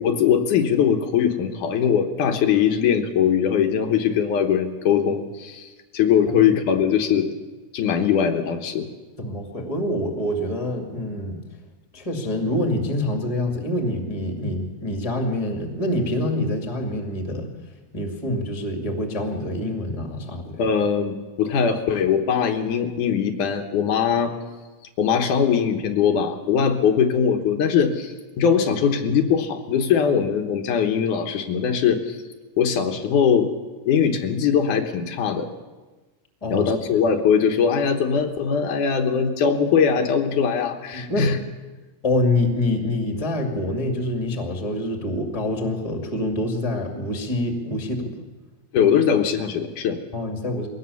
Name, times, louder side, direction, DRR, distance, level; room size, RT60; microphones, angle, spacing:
voice 1, 0.0-7.3 7.7-8.9 20.6-24.3 25.0-32.2 32.6-33.5 33.9-35.5 36.5-41.4 48.7-50.0, left 7 dB, 75° left, 5 dB, 2.7 m, -21 dB
voice 2, 9.2-11.4 11.9-17.5 17.9-20.6 36.4-36.7 40.9-41.3 42.0-48.2 50.1-50.7, left 1 dB, 10° left, 3 dB, 2.0 m, -26 dB
22.0 x 17.5 x 7.1 m, 1.3 s
omnidirectional pair, 3.7 m